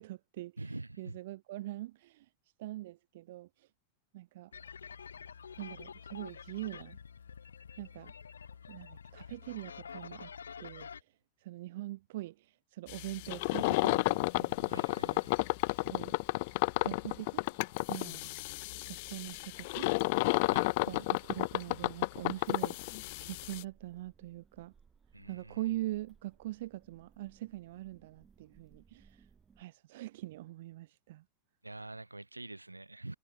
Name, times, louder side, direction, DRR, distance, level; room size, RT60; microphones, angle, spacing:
voice 1, 0.0-2.3 2.6-3.7 4.1-4.5 5.6-7.0 7.8-8.1 8.7-10.3 10.6-16.1 16.8-17.5 17.9-18.3 18.9-20.0 20.8-24.7 25.3-29.3 29.6-31.2, right 16 dB, 55° right, 0.9 m, -43 dB
voice 2, 0.6-1.2 14.7-15.4 20.4-20.7 25.1-25.6 31.6-33.2, right 2 dB, 85° right, 6.0 m, -46 dB
sound 1, 4.5-11.0, left 6 dB, 70° left, 1.1 m, -48 dB
sound 2, 12.9-23.6, left 25 dB, 50° left, 0.7 m, -32 dB
sound 3, 13.6-29.6, right 6 dB, 20° right, 6.9 m, -65 dB
figure-of-eight pair, 90°, 0 cm